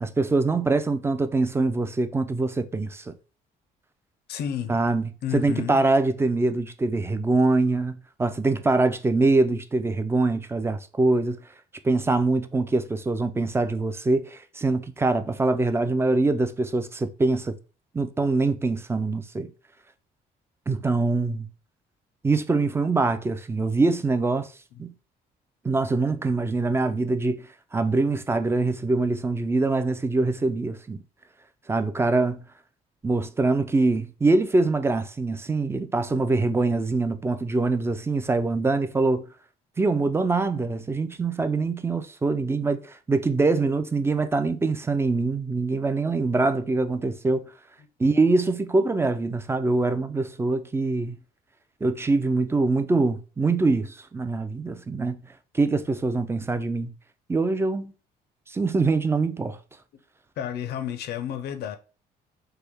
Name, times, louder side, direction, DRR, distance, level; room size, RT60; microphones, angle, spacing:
voice 1, 0.0-3.1 4.7-11.4 11.8-17.6 17.9-19.5 20.7-21.5 22.2-24.5 24.8-24.9 25.6-31.0 31.7-32.4 33.0-39.3 39.8-47.5 48.0-51.2 51.8-55.2 55.5-56.9 57.3-57.9 58.5-59.6, right 3 dB, 15° right, 0.3 m, -24 dB
voice 2, 4.3-4.7 5.2-5.8 60.4-61.8, left 9 dB, 70° left, 0.5 m, -31 dB
3.3 x 2.1 x 3.4 m
cardioid pair, 95°, 17 cm